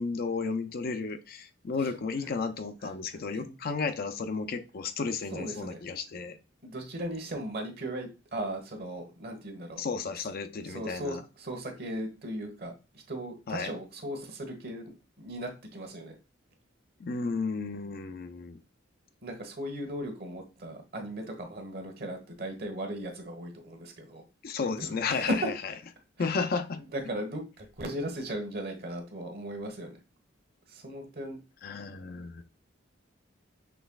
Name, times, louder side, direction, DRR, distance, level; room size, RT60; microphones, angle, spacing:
voice 1, 0.0-6.4 9.8-11.2 13.5-13.7 17.0-18.6 24.4-25.5 26.2-26.8 31.6-32.4, left 4 dB, 55° left, 0.5 m, -33 dB
voice 2, 2.8-3.6 5.3-5.8 6.6-9.8 10.7-14.8 15.2-16.1 19.2-24.2 24.6-25.5 26.2-26.3 26.9-30.0 30.7-31.4, right 1 dB, 55° right, 1.2 m, -37 dB
6.1 x 3.3 x 2.3 m
head